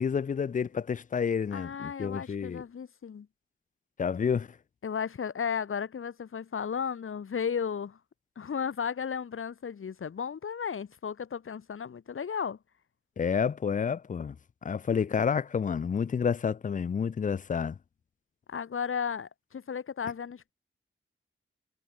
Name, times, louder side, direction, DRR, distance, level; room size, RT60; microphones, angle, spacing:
voice 1, 0.0-2.6 4.0-4.5 13.2-14.4 14.6-17.8, left 6 dB, 40° left, 0.4 m, -29 dB
voice 2, 1.5-3.3 4.8-8.0 8.4-12.6 18.5-20.5, left 7 dB, 80° left, 3.8 m, -34 dB
wide cardioid pair, 105°, 21 cm